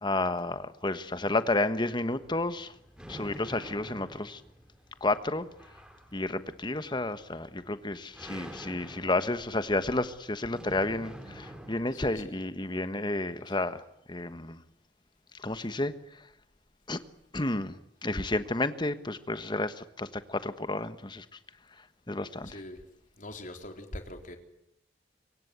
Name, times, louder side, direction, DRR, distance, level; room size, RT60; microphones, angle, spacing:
voice 1, 0.0-2.7 3.1-4.4 5.0-5.5 6.1-13.8 14.1-14.6 15.4-16.2 16.9-17.0 17.3-21.2 22.1-22.6, left 2 dB, 25° left, 12 dB, 1.4 m, -31 dB
sound 1, 1.8-12.3, equal, 5° right, 4.5 m, -48 dB
voice 2, 3.2-3.5 11.9-12.4 22.4-22.8 23.2-24.4, left 1 dB, 50° left, 5 dB, 3.7 m, -43 dB
25.0 x 23.5 x 8.3 m, 0.80 s
head